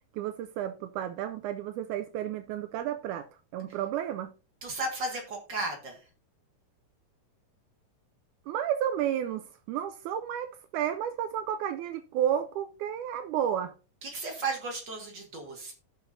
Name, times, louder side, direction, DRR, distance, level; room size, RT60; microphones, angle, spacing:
voice 1, 0.1-3.3 3.5-4.3 8.5-13.7, right 10 dB, 80° right, 2.0 m, -32 dB
voice 2, 4.6-6.0 14.0-15.7, right 2 dB, 40° right, 2.1 m, -34 dB
17.0 x 5.9 x 2.6 m
omnidirectional pair, 3.6 m